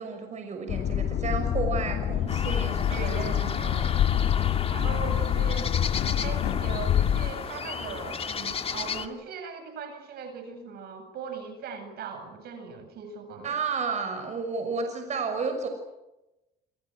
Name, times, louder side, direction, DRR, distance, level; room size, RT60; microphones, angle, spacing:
voice 1, 0.0-3.9 5.3-5.5 13.4-15.7, right 4 dB, 45° right, 5 dB, 6.1 m, -32 dB
sound 1, 0.7-7.3, left 10 dB, 65° left, 2.0 m, -26 dB
sound 2, 2.3-9.1, left 6 dB, 35° left, 2.3 m, -34 dB
sound 3, 2.8-9.0, left 8 dB, 85° left, 7.7 m, -41 dB
voice 2, 2.9-5.7 6.2-13.6, right 5 dB, 70° right, 7 dB, 7.9 m, -39 dB
27.5 x 26.5 x 6.3 m, 0.96 s
cardioid pair, 110°, 17 cm